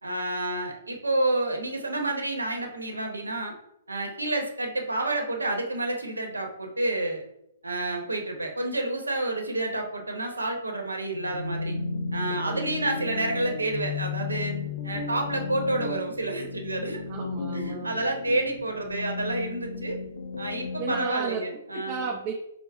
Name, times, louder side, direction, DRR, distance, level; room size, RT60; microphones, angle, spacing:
voice 1, 0.0-3.5 3.9-7.2 7.6-11.8 12.1-14.5 14.8-17.0 17.5-20.0 20.4-22.1, right 2 dB, 85° right, 3 dB, 0.9 m, -29 dB
sound 1, 11.1-21.1, left 4 dB, 65° left, 0.6 m, -34 dB
voice 2, 12.1-13.0 17.1-18.1 20.8-21.4 21.7-22.3, right 5 dB, 35° right, 0 dB, 0.7 m, -34 dB
4.6 x 2.0 x 4.1 m, 0.79 s
figure-of-eight pair, 125°, 0 cm